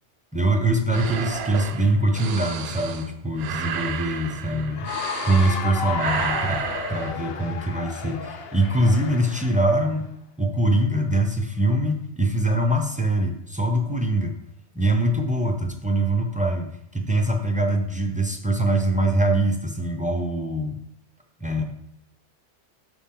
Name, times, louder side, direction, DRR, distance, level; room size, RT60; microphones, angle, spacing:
voice 1, 0.3-4.9 5.2-6.6 6.9-10.1 10.4-14.3 14.7-20.8 21.4-21.6, right 1 dB, 10° right, 4 dB, 0.5 m, -23 dB
sound 1, 0.9-5.7 5.9-7.1, right 8 dB, 65° right, 0.8 m, -32 dB
Cheering / Applause, 4.7-9.9, left 5 dB, 60° left, 0.8 m, -32 dB
7.2 x 5.6 x 3.8 m, 0.74 s
omnidirectional pair, 1.2 m